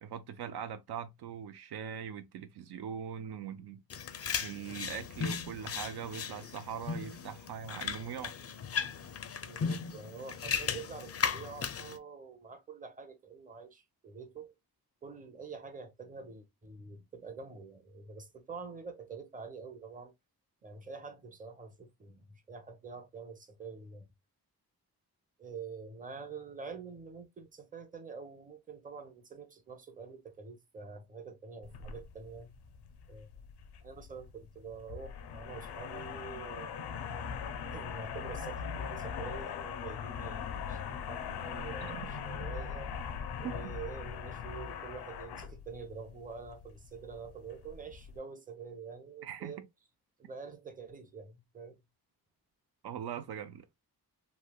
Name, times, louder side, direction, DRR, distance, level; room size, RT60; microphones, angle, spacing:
voice 1, 0.0-3.8 4.4-8.3 41.8-42.1 43.4-43.5 49.2-49.5 52.8-53.7, right 8 dB, 80° right, 0.5 m, -41 dB
sound 1, 3.9-12.0, left 6 dB, 40° left, 0.4 m, -37 dB
voice 2, 9.0-14.5 15.0-20.1 20.6-24.1 25.4-32.5 33.1-33.3 33.8-36.8 37.6-42.9 43.4-49.7 50.2-51.8, right 5 dB, 20° right, 0.7 m, -46 dB
sound 2, 31.6-48.2, left 7 dB, 90° left, 0.5 m, -41 dB
3.1 x 2.8 x 2.2 m
wide cardioid pair, 110°, 39 cm